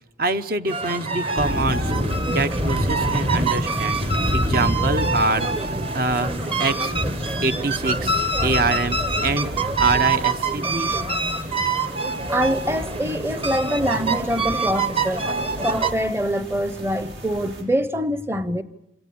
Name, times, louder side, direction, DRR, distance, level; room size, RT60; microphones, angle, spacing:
voice 1, 0.2-1.9 2.3-4.0 4.3-5.7 5.9-6.9 7.4-9.5 9.8-11.0, right 3 dB, 50° right, 0.9 m, -25 dB
sound 1, 0.7-15.9, right 3 dB, 30° right, 1.1 m, -25 dB
sound 2, 1.4-17.6, left 1 dB, 75° right, 6.7 m, -31 dB
voice 2, 12.3-15.3 15.6-18.6, equal, 15° right, 0.8 m, -24 dB
27.5 x 17.0 x 8.6 m
head